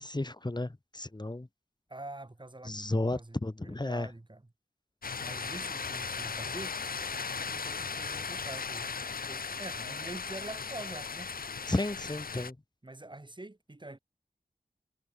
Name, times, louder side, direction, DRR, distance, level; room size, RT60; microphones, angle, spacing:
voice 1, 0.0-1.5 2.6-4.1 11.7-12.6, left 2 dB, 30° left, 2.8 m, -33 dB
voice 2, 1.9-4.4 5.2-6.8 7.5-11.3 12.8-14.0, right 2 dB, 30° right, 4.9 m, -45 dB
sound 1, 5.0-12.5, left 5 dB, 70° left, 0.9 m, -37 dB
wide cardioid pair, 60°, 15 cm